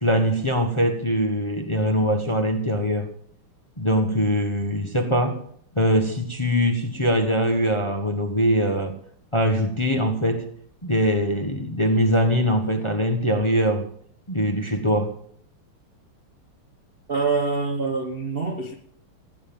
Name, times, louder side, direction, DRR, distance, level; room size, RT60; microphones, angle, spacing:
voice 1, 0.0-3.1 3.8-5.5 5.7-9.0 9.3-10.5 10.8-13.9 14.3-15.2, equal, 15° left, 1.2 m, -22 dB
voice 2, 17.1-18.7, right 4 dB, 35° right, 1.0 m, -25 dB
15.5 x 9.5 x 7.3 m
omnidirectional pair, 2.4 m